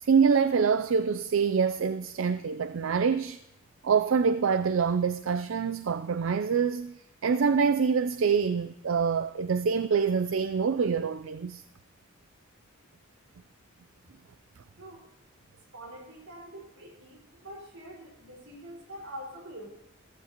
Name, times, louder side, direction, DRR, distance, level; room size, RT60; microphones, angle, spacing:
voice 1, 0.0-3.4 3.8-11.6, right 6 dB, 70° right, 0.4 m, -25 dB
voice 2, 15.7-19.7, equal, 90° right, 4.6 m, -45 dB
15.0 x 15.0 x 2.9 m
head